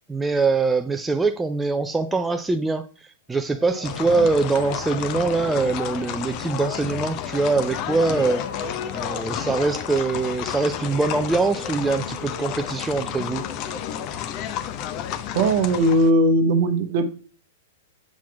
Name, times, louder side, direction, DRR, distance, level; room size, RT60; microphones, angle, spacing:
voice 1, 0.1-13.5, right 3 dB, 10° right, 0.3 m, -23 dB
sound 1, 3.5-14.6, left 1 dB, 80° left, 2.3 m, -41 dB
sound 2, 3.8-16.1, left 10 dB, 35° left, 0.6 m, -31 dB
voice 2, 15.3-17.0, right 1 dB, 45° right, 0.8 m, -18 dB
7.2 x 5.8 x 2.3 m
figure-of-eight pair, 105°, 0 cm